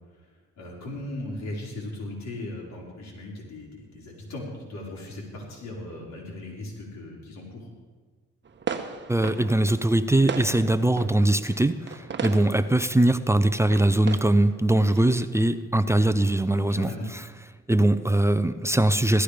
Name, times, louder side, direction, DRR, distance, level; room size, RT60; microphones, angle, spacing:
voice 1, 0.6-7.7 16.7-17.1, left 1 dB, 65° left, -3 dB, 5.0 m, -37 dB
sound 1, 8.5-15.3, right 6 dB, 35° right, 1.2 m, -37 dB
voice 2, 9.1-17.2 17.7-19.2, right 1 dB, 10° right, 12 dB, 0.5 m, -22 dB
16.5 x 13.5 x 5.1 m, 1.5 s
cardioid pair, 90°, 30 cm